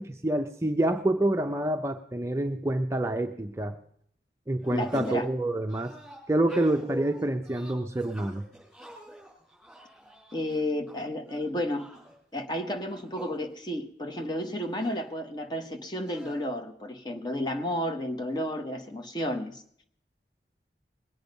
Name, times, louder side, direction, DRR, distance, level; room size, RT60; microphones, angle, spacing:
voice 1, 0.0-3.8 4.5-5.9 6.3-8.4, right 1 dB, 15° right, 5 dB, 0.5 m, -27 dB
sound 1, 4.6-5.3 5.7-10.9 11.3-12.1 12.8-13.4 13.7-13.8 14.1-15.0 16.0-16.3, right 1 dB, ahead, 5.2 m, -45 dB
voice 2, 4.7-5.3 10.3-11.9 12.3-19.6, left 1 dB, 25° left, 5 dB, 1.1 m, -32 dB
21.0 x 8.7 x 5.3 m, 0.66 s
head